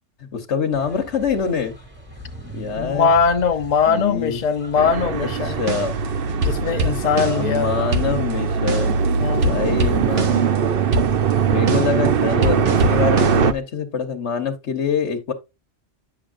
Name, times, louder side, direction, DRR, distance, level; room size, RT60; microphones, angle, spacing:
voice 1, 0.3-1.7 2.5-3.1 3.9-4.4 5.2-5.9 7.3-10.5 11.5-15.3, left 6 dB, 65° left, 1.3 m, -25 dB
sound 1, 0.7-6.6, right 1 dB, 10° right, 2.5 m, -40 dB
voice 2, 2.8-5.6 6.4-7.9 9.2-9.7, left 6 dB, 40° left, 0.8 m, -21 dB
sound 2, 4.7-13.5, right 7 dB, 55° right, 0.8 m, -21 dB
sound 3, 5.6-7.6 7.9-9.1 9.3-10.6 10.9-13.5, right 1 dB, 70° right, 1.5 m, -25 dB
9.9 x 6.8 x 2.5 m
omnidirectional pair, 1.3 m